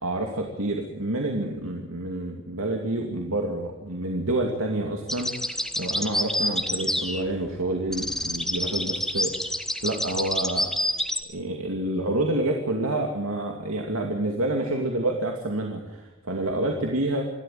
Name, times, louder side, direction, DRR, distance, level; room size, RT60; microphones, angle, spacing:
voice 1, 0.0-9.3 9.8-10.7 11.3-17.3, right 1 dB, 85° right, 2 dB, 2.6 m, -28 dB
sound 1, 5.1-7.6 7.9-11.2, left 1 dB, ahead, 1.2 m, -28 dB
27.5 x 13.0 x 9.4 m, 0.99 s
head